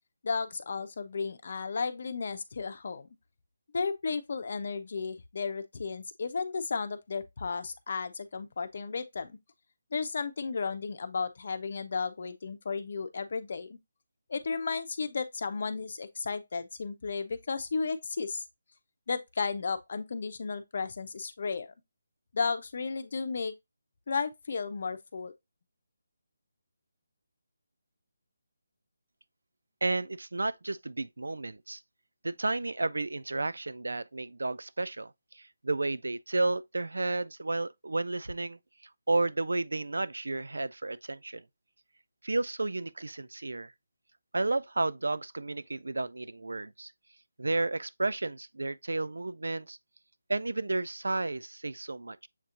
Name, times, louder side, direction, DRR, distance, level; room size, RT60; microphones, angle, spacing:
voice 1, 0.2-3.1 3.7-9.4 9.9-13.8 14.3-18.4 19.1-21.7 22.3-23.5 24.1-25.3, left 5 dB, 55° left, 0.7 m, -34 dB
voice 2, 29.8-31.8 32.2-38.6 39.1-41.4 42.2-43.7 44.3-46.9 47.4-49.8 50.3-52.3, right 2 dB, 85° right, 0.4 m, -32 dB
7.3 x 2.8 x 2.5 m
figure-of-eight pair, 160°, 0 cm